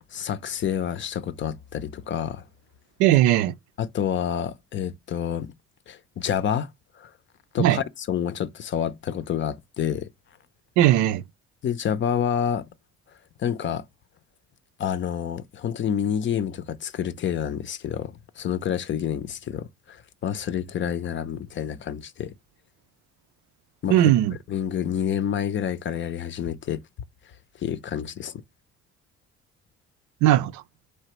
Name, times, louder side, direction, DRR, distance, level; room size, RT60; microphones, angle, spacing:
voice 1, 0.1-2.5 3.8-5.5 5.9-6.7 7.0-7.1 7.5-10.1 11.6-12.7 13.4-13.8 14.8-22.3 23.8-24.0 24.5-26.8 27.6-28.4, left 9 dB, 40° left, 0.6 m, -28 dB
voice 2, 3.0-3.5 7.6-7.8 10.8-11.2 23.9-24.3 30.2-30.6, right 13 dB, 80° right, 0.5 m, -18 dB
4.3 x 3.3 x 3.0 m
cardioid pair, 95°, 29 cm